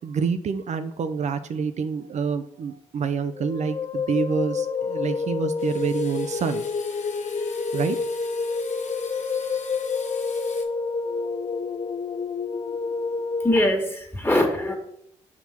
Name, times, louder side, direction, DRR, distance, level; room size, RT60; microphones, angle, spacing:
voice 1, 0.0-6.6 7.7-8.0, right 6 dB, 55° right, 10 dB, 0.4 m, -27 dB
sound 1, 3.4-13.6, left 4 dB, 35° left, 0.4 m, -28 dB
sound 2, 5.6-10.6, left 5 dB, 60° left, 1.0 m, -44 dB
voice 2, 13.4-14.7, left 1 dB, 15° left, 3 dB, 1.7 m, -22 dB
5.8 x 3.7 x 4.3 m, 0.71 s
supercardioid pair, 45°, 14 cm